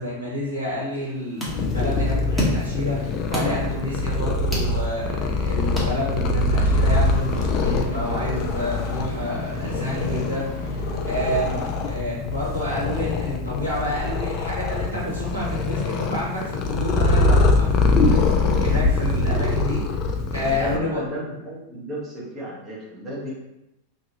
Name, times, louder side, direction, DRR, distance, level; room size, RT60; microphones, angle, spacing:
voice 1, 0.0-19.8 20.3-21.0, left 1 dB, 85° right, -6 dB, 1.2 m, -29 dB
sound 1, 0.9-6.5, left 1 dB, ahead, 0.9 m, -32 dB
Purr, 1.5-20.8, left 3 dB, 35° left, 0.3 m, -23 dB
sound 2, 6.5-11.8, equal, 70° left, 0.8 m, -36 dB
voice 2, 20.6-23.3, right 1 dB, 25° right, -7 dB, 0.9 m, -34 dB
2.9 x 2.4 x 2.8 m, 0.88 s
figure-of-eight pair, 90°, 0 cm